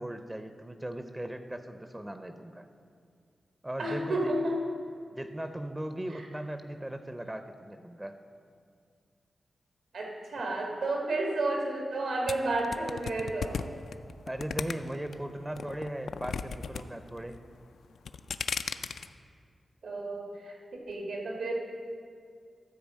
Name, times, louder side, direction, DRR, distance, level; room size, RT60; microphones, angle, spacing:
voice 1, 0.0-2.7 3.6-4.3 5.1-8.2 14.3-17.4, right 1 dB, 15° right, 8 dB, 0.5 m, -38 dB
voice 2, 3.8-4.7 6.1-6.2 9.9-13.6 19.8-20.6 20.9-21.5, right 2 dB, 90° right, 0 dB, 1.6 m, -31 dB
sound 1, 12.3-15.1 15.6-16.8 17.1-17.6 18.0-19.1, left 6 dB, 85° left, 0.3 m, -35 dB
13.0 x 4.7 x 7.3 m, 2.2 s
wide cardioid pair, 110°, 0 cm